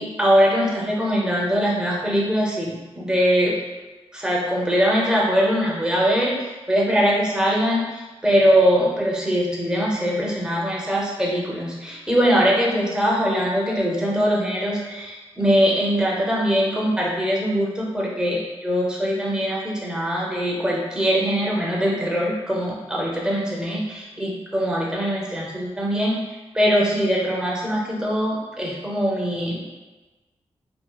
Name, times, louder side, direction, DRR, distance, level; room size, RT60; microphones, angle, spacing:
voice 1, 0.0-3.5 4.1-26.2 26.5-29.6, equal, 5° right, -4 dB, 0.6 m, -22 dB
3.6 x 2.3 x 2.2 m, 1.2 s
wide cardioid pair, 140°, 11 cm